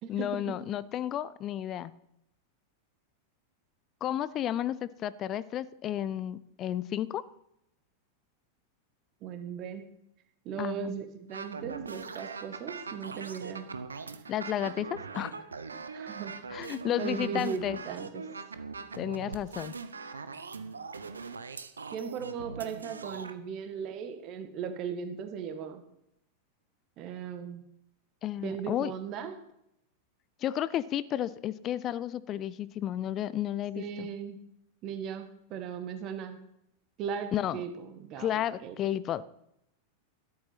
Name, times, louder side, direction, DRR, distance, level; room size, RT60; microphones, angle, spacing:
voice 1, 0.1-1.9 4.0-7.2 10.6-10.9 14.3-15.4 16.5-17.8 19.0-19.7 28.2-28.9 30.4-34.1 37.3-37.6 38.2-39.2, left 11 dB, 30° left, 18 dB, 0.6 m, -32 dB
voice 2, 9.2-9.9 10.4-13.7 15.9-16.4 17.0-18.2 21.9-25.8 27.0-27.6 28.4-29.3 33.7-34.4 34.8-36.4 37.0-38.3 38.6-38.8, right 7 dB, 40° right, 7 dB, 1.7 m, -37 dB
sound 1, 11.3-23.3, right 4 dB, 75° right, 0.9 m, -41 dB
13.0 x 11.5 x 5.9 m, 0.79 s
figure-of-eight pair, 90°, 0 cm